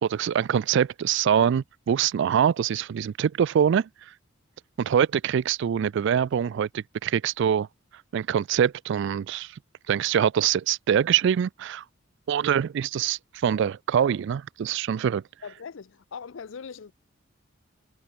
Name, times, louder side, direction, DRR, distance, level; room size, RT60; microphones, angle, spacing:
voice 1, 0.0-3.9 4.8-7.7 8.1-9.5 9.9-11.8 12.3-15.2, right 8 dB, 65° right, 0.3 m, -24 dB
voice 2, 15.4-16.9, left 6 dB, 70° left, 0.5 m, -40 dB
head